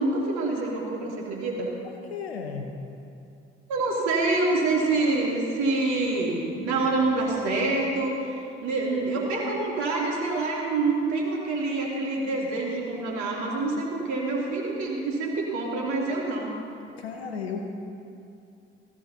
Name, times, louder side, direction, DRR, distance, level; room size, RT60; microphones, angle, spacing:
voice 1, 0.0-1.7 3.7-16.5, right 3 dB, 70° right, -3 dB, 3.2 m, -26 dB
voice 2, 2.1-2.8 17.0-17.7, left 5 dB, 90° left, 4 dB, 1.0 m, -34 dB
18.5 x 15.0 x 2.9 m, 2.6 s
hypercardioid pair, 50°, 30 cm